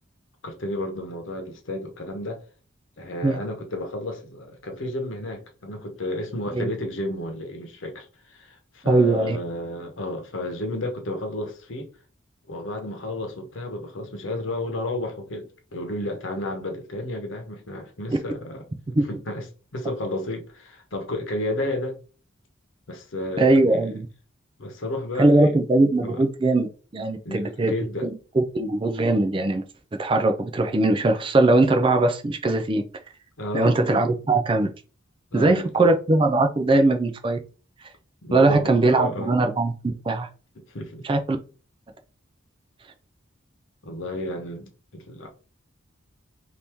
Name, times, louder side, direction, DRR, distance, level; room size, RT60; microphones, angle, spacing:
voice 1, 0.4-2.4 3.0-11.9 12.5-19.4 19.7-22.0 22.9-23.9 24.6-25.6 26.0-26.2 27.2-28.1 33.4-33.8 35.3-35.9 38.2-39.3 40.7-41.0 43.8-45.3, left 1 dB, 65° left, 0.9 m, -32 dB
voice 2, 8.8-9.4 18.1-18.2 19.0-19.1 23.4-24.1 25.2-26.7 26.9-27.7 28.0-28.1 28.4-29.6 30.0-32.9 33.5-34.7 35.3-37.4 38.3-40.3 41.0-41.4, right 2 dB, 25° right, 0.3 m, -20 dB
2.9 x 2.6 x 3.4 m
head